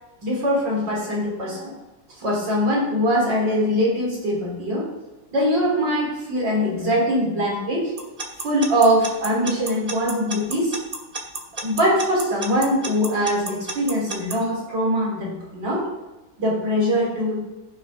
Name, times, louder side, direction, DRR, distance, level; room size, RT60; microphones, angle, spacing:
voice 1, 0.2-1.7 2.2-4.8 5.3-7.9 8.4-10.7 11.6-15.8 16.4-17.4, equal, 65° right, -4 dB, 4.3 m, -22 dB
Alarm / Clock, 8.0-14.3, right 2 dB, 25° right, 0.8 m, -30 dB
15.0 x 5.9 x 3.7 m, 1.1 s
omnidirectional pair, 2.1 m